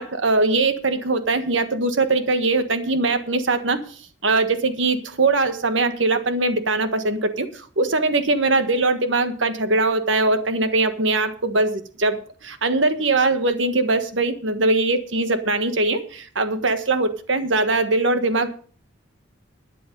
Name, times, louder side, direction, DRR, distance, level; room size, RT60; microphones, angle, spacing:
voice 1, 0.0-3.8 4.2-18.5, right 3 dB, 75° right, 9 dB, 1.5 m, -21 dB
12.5 x 10.0 x 5.3 m, 0.42 s
head